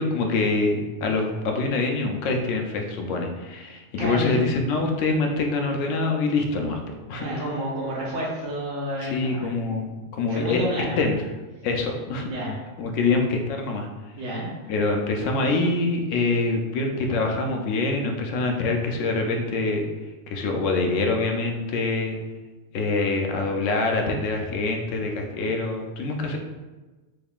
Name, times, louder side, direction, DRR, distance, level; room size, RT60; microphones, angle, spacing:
voice 1, 0.0-6.8 7.1-7.4 9.0-11.2 11.6-12.3 12.8-13.9 14.7-19.8 20.3-22.2 22.7-26.4, left 3 dB, 85° left, 2 dB, 0.9 m, -25 dB
voice 2, 4.0-4.4 7.2-9.5 10.3-11.0 12.3-12.6 14.2-14.5, right 1 dB, 85° right, -5 dB, 1.3 m, -30 dB
3.5 x 3.2 x 2.3 m, 1.2 s
omnidirectional pair, 1.2 m